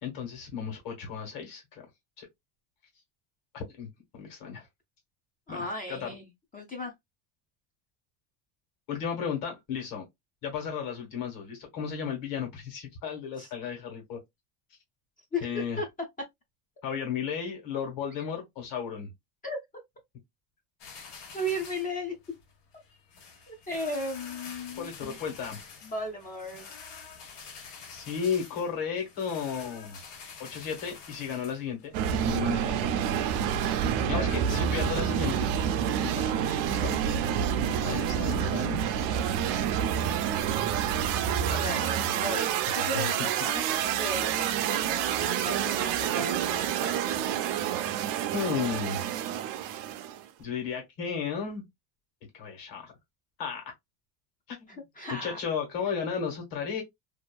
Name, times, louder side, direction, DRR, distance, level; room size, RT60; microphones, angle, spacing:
voice 1, 0.0-1.8 2.2-2.3 3.5-4.7 5.5-6.1 8.9-10.0 10.4-14.2 15.4-15.8 16.8-19.1 24.8-25.6 27.9-30.0 30.4-33.0 34.1-35.5 36.0-36.9 37.8-38.8 42.9-43.0 48.3-49.1 50.4-51.6 52.3-52.9 53.4-53.7 54.5-54.8 55.2-56.8, left 7 dB, 45° left, 1.3 m, -34 dB
voice 2, 5.5-6.3 6.5-6.9 13.4-13.5 15.3-15.9 19.4-19.6 21.3-22.2 23.5-25.2 25.8-26.7 34.0-34.3 36.8-37.1 37.4-37.7 41.5-47.1 55.0-55.4, left 1 dB, 20° left, 0.4 m, -36 dB
sound 1, 20.8-32.0, left 5 dB, 85° left, 1.2 m, -47 dB
sound 2, 31.9-50.2, right 9 dB, 65° right, 0.5 m, -28 dB
2.7 x 2.4 x 2.2 m
cardioid pair, 150°, 46 cm